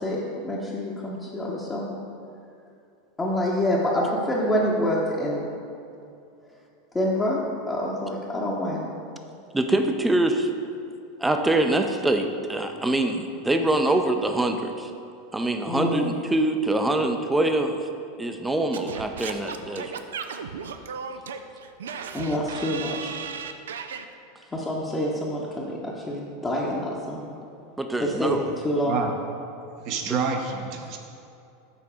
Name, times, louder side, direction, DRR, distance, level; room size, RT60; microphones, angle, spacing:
voice 1, 0.0-2.0 3.2-5.4 6.9-7.4 7.7-8.9 15.7-16.2 22.1-23.1 24.5-27.3 28.0-29.0, left 1 dB, 15° left, -5 dB, 0.9 m, -27 dB
voice 2, 9.5-10.5 11.2-14.9 15.3-17.8 18.2-19.9 27.8-28.5 30.1-30.2, right 2 dB, 10° right, 5 dB, 0.6 m, -24 dB
Singing / Scratching (performance technique), 18.7-24.0, right 6 dB, 70° right, 0.4 m, -35 dB
voice 3, 29.8-31.0, right 5 dB, 50° right, 3 dB, 0.9 m, -27 dB
7.0 x 4.5 x 4.9 m, 2.6 s
figure-of-eight pair, 85°, 0 cm